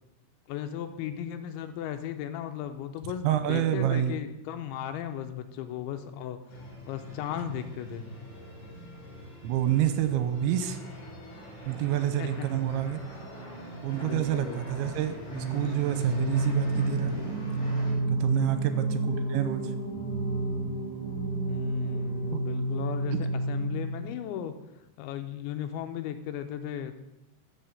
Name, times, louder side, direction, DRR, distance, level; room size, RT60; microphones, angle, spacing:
voice 1, 0.5-8.1 12.2-12.5 14.0-14.6 18.3-18.9 21.5-24.5 25.0-27.0, left 10 dB, 80° left, 8 dB, 2.9 m, -36 dB
voice 2, 3.2-4.2 9.4-10.8 11.7-13.0 13.8-17.1 18.1-19.7 22.3-22.4, right 11 dB, 85° right, 10 dB, 2.9 m, -28 dB
sound 1, 6.5-17.9, equal, 30° left, 5.6 m, -43 dB
Singing, 15.2-24.2, right 2 dB, 45° left, 3.1 m, -30 dB
14.0 x 5.8 x 6.9 m, 0.92 s
omnidirectional pair, 5.6 m